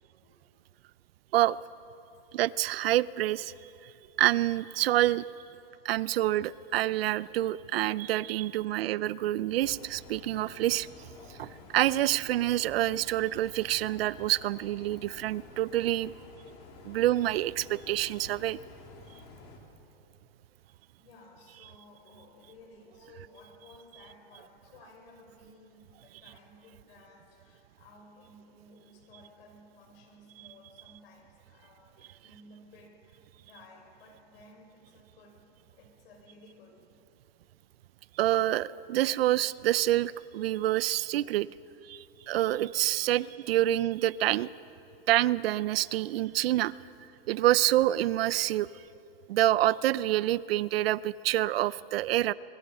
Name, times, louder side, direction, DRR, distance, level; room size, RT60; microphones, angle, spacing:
voice 1, 2.3-3.5 4.2-5.2 5.8-10.9 11.4-16.1 16.8-18.6 38.2-41.5 41.9-44.5 45.1-46.7 47.3-48.7 49.3-52.3, right 14 dB, 75° right, 19 dB, 0.6 m, -27 dB
sound 1, 9.6-19.6, left 4 dB, 45° left, 3.5 m, -51 dB
voice 2, 20.6-36.8, left 2 dB, 75° left, 2 dB, 6.1 m, -56 dB
23.5 x 23.0 x 5.4 m, 2.8 s
hypercardioid pair, 135°, 30 cm